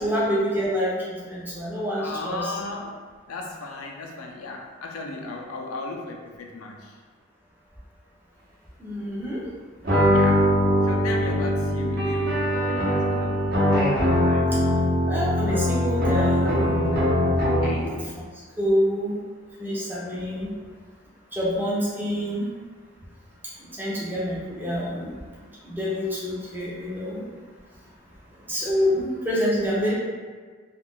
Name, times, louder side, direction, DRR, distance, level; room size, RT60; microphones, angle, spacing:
voice 1, 0.0-2.6 8.8-9.4 15.0-16.7 17.9-18.0 18.6-19.2 19.6-20.5 21.3-22.5 23.8-25.1 25.6-27.2 28.5-29.9, equal, 10° right, -7 dB, 0.5 m, -26 dB
voice 2, 2.0-2.9 3.3-6.9 10.1-10.4 10.8-13.4 14.0-14.5 17.6-18.0, left 3 dB, 90° left, 0 dB, 0.5 m, -35 dB
sound 1, 9.8-17.9, equal, 45° right, 0.8 m, -22 dB
2.4 x 2.2 x 3.6 m, 1.5 s
head